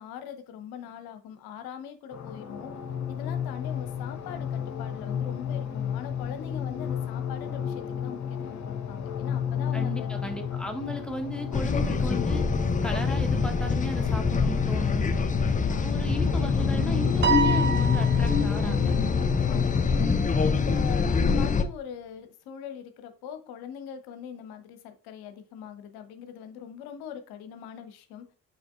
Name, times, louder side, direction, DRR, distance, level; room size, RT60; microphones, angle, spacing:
voice 1, 0.0-2.7 3.1-10.1 15.7-16.0 19.4-19.8 20.4-28.3, left 8 dB, 55° left, 1.0 m, -42 dB
sound 1, 2.1-20.1, left 8 dB, 40° left, 1.2 m, -31 dB
voice 2, 9.7-12.5 12.8-15.1 15.8-18.9, equal, ahead, 1.3 m, -35 dB
sound 2, 11.5-21.6, left 4 dB, 15° left, 0.6 m, -25 dB
Piano, 17.2-18.8, right 5 dB, 25° right, 0.9 m, -27 dB
6.4 x 6.2 x 2.5 m
figure-of-eight pair, 50°, 45 cm